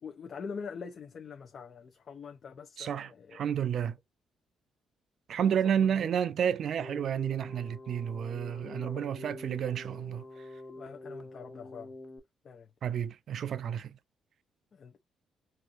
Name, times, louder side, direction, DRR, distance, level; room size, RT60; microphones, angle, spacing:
voice 1, 0.0-3.5 5.4-6.1 8.5-9.1 10.7-11.9 12.4-12.7 14.7-15.0, left 6 dB, 50° left, 0.7 m, -44 dB
voice 2, 2.8-4.0 5.3-10.2 12.8-14.0, right 8 dB, 60° right, 0.5 m, -31 dB
Keyboard (musical), 6.8-12.2, left 2 dB, 15° left, 1.4 m, -46 dB
4.4 x 2.6 x 2.6 m
cardioid pair, 90°, 0 cm